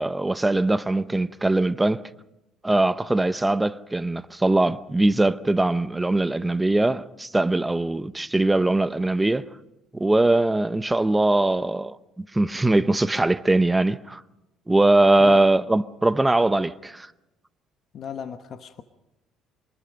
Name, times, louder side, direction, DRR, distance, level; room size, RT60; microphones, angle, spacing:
voice 1, 0.0-2.0 2.6-9.5 9.9-14.2 14.7-17.1, right 2 dB, 10° right, 0.7 m, -21 dB
voice 2, 17.9-18.8, left 8 dB, 45° left, 1.1 m, -35 dB
26.0 x 20.0 x 5.3 m
cardioid pair, 130°, 0 cm